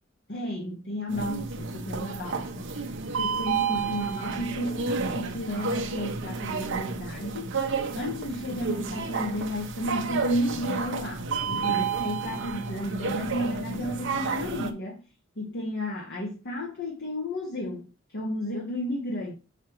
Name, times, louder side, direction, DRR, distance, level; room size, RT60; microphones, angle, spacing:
voice 1, 0.3-2.8 3.2-7.5 7.9-15.0 15.4-19.3, left 1 dB, 60° left, 1.3 m, -33 dB
sound 1, 1.1-14.7, right 5 dB, 65° right, 0.9 m, -31 dB
6.2 x 5.7 x 3.0 m
head